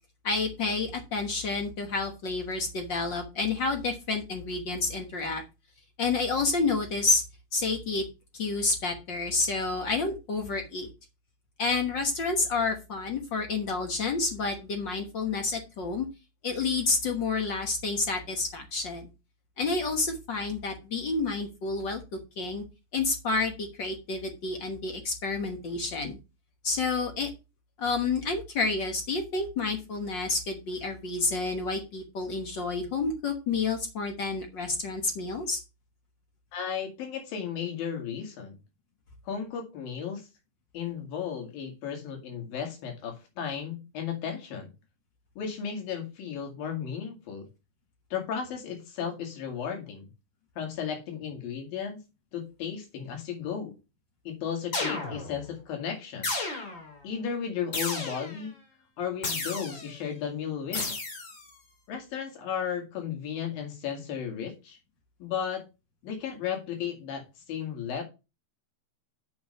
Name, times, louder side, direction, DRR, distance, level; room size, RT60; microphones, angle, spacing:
voice 1, 0.2-5.4 6.0-7.2 7.5-8.0 8.3-10.9 11.6-16.1 16.4-19.1 19.6-22.0 22.4-22.6 22.9-26.2 26.6-27.3 27.8-35.6, left 3 dB, 60° left, 4 dB, 1.2 m, -29 dB
voice 2, 36.5-38.6 39.3-40.3 40.7-44.7 45.4-47.5 48.1-50.1 50.6-52.0 52.3-53.7 54.3-56.3 57.0-58.5 59.0-61.0 61.9-64.8 65.2-65.6 66.0-68.0, left 7 dB, 90° left, 2 dB, 4.0 m, -34 dB
sound 1, 54.7-55.4 56.2-56.9 57.7-58.4 59.2-59.9 60.7-61.4, left 3 dB, 35° left, 2.7 m, -33 dB
7.5 x 5.6 x 5.5 m, 0.28 s
omnidirectional pair, 4.0 m